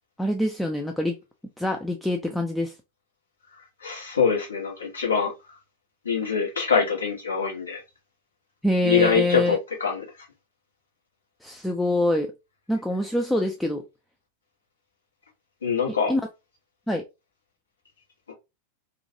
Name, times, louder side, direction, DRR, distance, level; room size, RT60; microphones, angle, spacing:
voice 1, 0.2-1.2 1.6-2.7 8.6-9.6 11.4-12.3 12.7-13.8 16.1-16.2 16.9-17.0, left 1 dB, 5° left, 0.3 m, -25 dB
voice 2, 3.8-5.6 6.0-7.8 8.8-10.1 15.6-16.1 18.3-18.4, left 6 dB, 70° left, 0.9 m, -24 dB
2.4 x 2.2 x 2.6 m
figure-of-eight pair, 90°, 0 cm